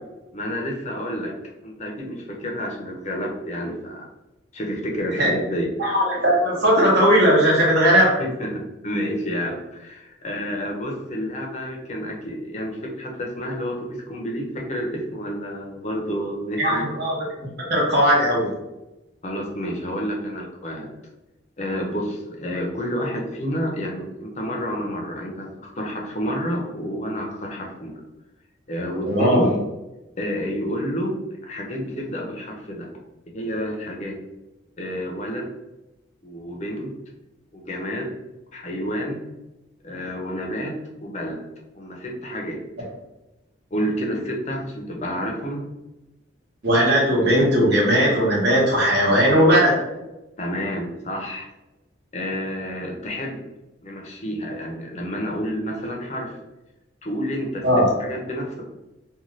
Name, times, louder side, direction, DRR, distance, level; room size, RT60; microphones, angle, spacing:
voice 1, 0.3-1.4 1.6-4.1 4.5-5.7 8.2-16.8 19.2-20.9 21.6-28.0 28.7-29.6 30.2-32.9 33.3-34.2 34.8-35.5 36.2-36.9 37.5-38.2 38.5-39.2 39.8-41.4 41.7-42.6 43.7-45.7 50.4-51.5 52.1-53.4 53.8-56.4 57.0-57.6 58.0-58.6, equal, 35° left, 0 dB, 0.5 m, -29 dB
voice 2, 5.8-8.2 16.6-18.5 29.1-29.4 46.6-49.8 57.6-58.0, equal, 55° right, -4 dB, 0.9 m, -18 dB
2.6 x 2.2 x 3.1 m, 0.99 s
head